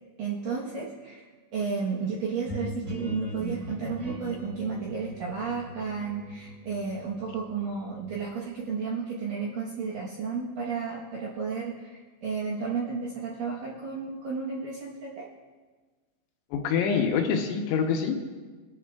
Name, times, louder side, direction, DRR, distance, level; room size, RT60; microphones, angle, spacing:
voice 1, 0.2-1.2 1.5-15.3, right 5 dB, 70° right, -4 dB, 2.1 m, -32 dB
sound 1, 2.5-8.1, equal, 25° right, 2.8 m, -39 dB
voice 2, 16.5-18.2, left 6 dB, 75° left, 3 dB, 3.0 m, -25 dB
21.0 x 11.0 x 2.3 m, 1.4 s
omnidirectional pair, 5.5 m